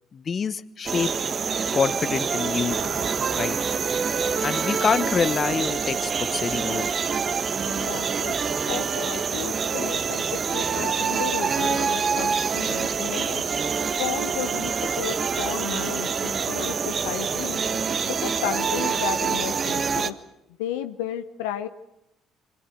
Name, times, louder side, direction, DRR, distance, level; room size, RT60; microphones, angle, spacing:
voice 1, 0.1-1.1 1.7-2.8 3.3-3.6 4.4-6.9, left 6 dB, 45° left, 14 dB, 1.2 m, -26 dB
sound 1, 0.9-20.1, right 6 dB, 45° right, 1.5 m, -26 dB
voice 2, 7.6-8.3 8.7-13.4 14.0-17.6 18.0-20.1 20.6-21.7, left 11 dB, 80° left, 10 dB, 0.9 m, -33 dB
27.0 x 24.5 x 6.4 m, 0.88 s
hypercardioid pair, 55°, 0 cm